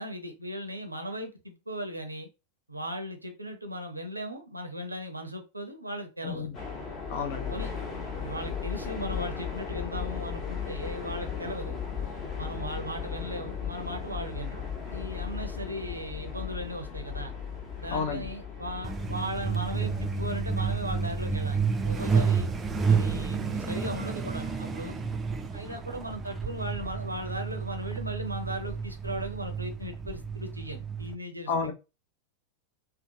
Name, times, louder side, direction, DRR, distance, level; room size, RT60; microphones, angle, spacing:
voice 1, 0.0-2.3 2.7-6.5 7.5-7.7 8.2-11.8 12.4-14.6 14.9-17.3 17.8-22.5 22.9-25.0 25.5-31.7, equal, 85° right, 0.6 m, -37 dB
voice 2, 6.2-6.6 7.1-7.5 17.9-18.3 31.5-31.7, left 5 dB, 50° left, 0.5 m, -31 dB
sound 1, 6.5-24.9, left 6 dB, 30° left, 1.0 m, -37 dB
Truck, 18.8-31.1, right 5 dB, 15° right, 0.4 m, -30 dB
2.8 x 2.1 x 2.6 m
figure-of-eight pair, 90°, 0 cm